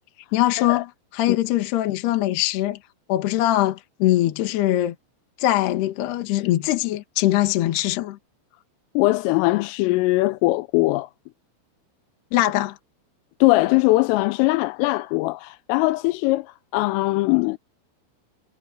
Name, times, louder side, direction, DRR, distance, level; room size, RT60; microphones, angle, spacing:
voice 1, 0.3-0.9 1.1-2.8 3.1-4.9 5.4-8.2 12.3-12.8, left 15 dB, 65° left, 3.3 m, -22 dB
voice 2, 9.0-11.1 13.4-17.6, left 21 dB, 85° left, 3.3 m, -21 dB
omnidirectional pair, 5.9 m